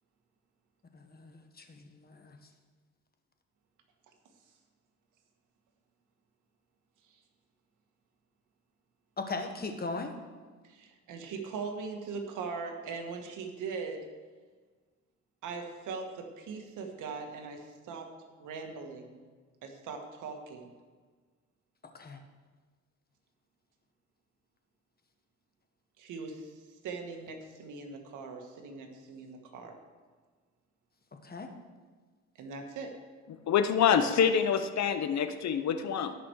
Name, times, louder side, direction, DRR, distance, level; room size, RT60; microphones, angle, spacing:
voice 1, 0.9-2.4 9.2-10.1 21.9-22.2 31.2-31.5, left 3 dB, 30° left, 5 dB, 1.5 m, -39 dB
voice 2, 10.6-14.0 15.4-18.1 18.4-19.2 19.6-20.7 26.0-26.5 26.8-29.8 32.4-32.9, right 4 dB, 85° right, 4 dB, 1.7 m, -40 dB
voice 3, 33.5-36.1, left 7 dB, 65° left, 10 dB, 0.9 m, -26 dB
17.0 x 6.0 x 4.8 m, 1.5 s
cardioid pair, 90°, 30 cm